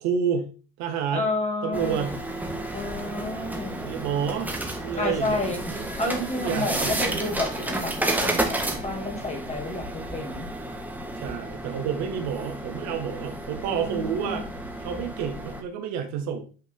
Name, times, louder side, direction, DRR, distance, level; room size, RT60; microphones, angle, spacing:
voice 1, 0.0-1.3 1.6-2.2 3.8-7.3 11.2-14.5 14.8-16.5, right 7 dB, 60° right, 5 dB, 1.8 m, -30 dB
voice 2, 1.1-2.1 2.7-3.8 5.0-5.6 6.0-10.5 13.7-14.4, left 2 dB, 20° left, 2 dB, 3.0 m, -30 dB
sound 1, 1.7-15.6, right 1 dB, 5° right, 1.7 m, -32 dB
9.4 x 5.1 x 3.8 m, 0.37 s
hypercardioid pair, 90°, 30 cm